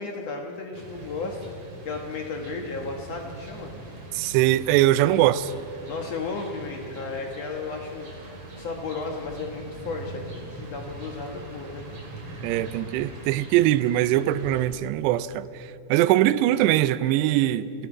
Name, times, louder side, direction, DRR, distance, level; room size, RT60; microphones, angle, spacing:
voice 1, 0.0-1.5 1.9-3.7 5.9-8.1 8.6-11.9, left 4 dB, 70° left, 1.6 m, -34 dB
sound 1, 0.7-14.6, right 2 dB, 40° right, 3.9 m, -42 dB
voice 2, 4.1-5.5 12.4-17.9, right 14 dB, 90° right, 2.8 m, -22 dB
28.0 x 19.0 x 5.0 m
omnidirectional pair, 4.8 m